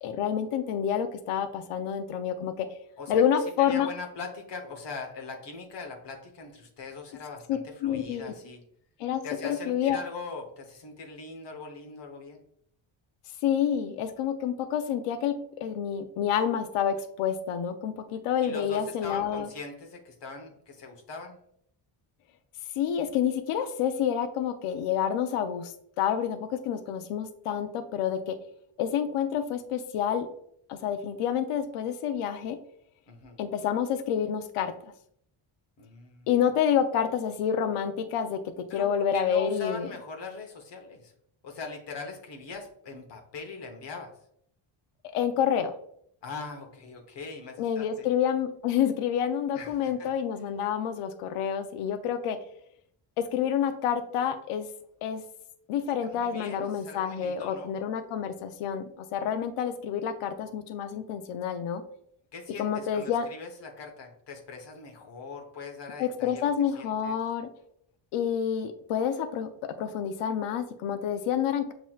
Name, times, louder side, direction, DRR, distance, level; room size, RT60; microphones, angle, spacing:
voice 1, 0.0-2.7 3.1-3.9 7.5-8.3 9.0-10.0 13.4-19.5 22.8-28.4 28.8-30.3 30.7-32.6 33.4-34.9 36.3-39.9 45.1-45.7 47.6-52.4 53.2-54.7 55.0-55.2 55.7-61.8 62.6-63.3 66.0-67.5 68.1-71.7, left 8 dB, 85° left, 8 dB, 0.6 m, -28 dB
voice 2, 3.6-8.6 9.2-12.4 18.4-21.4 33.1-33.4 35.8-36.3 38.7-41.1 41.4-44.1 46.2-48.1 49.5-50.1 56.0-57.7 62.3-67.2, left 4 dB, 55° left, 3 dB, 1.0 m, -41 dB
7.3 x 2.9 x 2.3 m, 0.68 s
cardioid pair, 135°, 50 cm